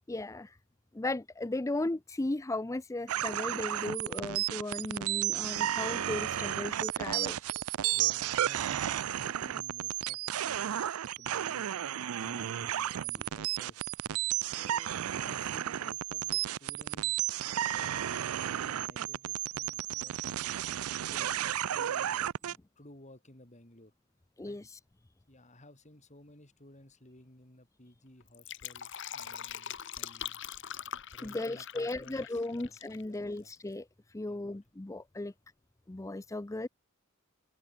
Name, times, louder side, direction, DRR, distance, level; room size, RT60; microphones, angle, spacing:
voice 1, 0.1-0.6 0.9-7.5 24.4-24.8 31.2-35.3 35.9-36.7, left 2 dB, 15° left, 0.5 m, -36 dB
sound 1, 3.1-22.6, right 12 dB, 85° right, 0.4 m, -33 dB
voice 2, 7.9-10.8 11.2-13.9 14.4-18.3 18.6-20.2 21.1-21.4 21.7-23.9 24.4-24.6 25.3-30.4 31.1-33.5 34.3-34.6 35.2-35.3, left 1 dB, 35° left, 4.7 m, -56 dB
Fill (with liquid), 28.2-33.0 33.3-33.4, left 9 dB, 60° left, 2.0 m, -42 dB
open air
head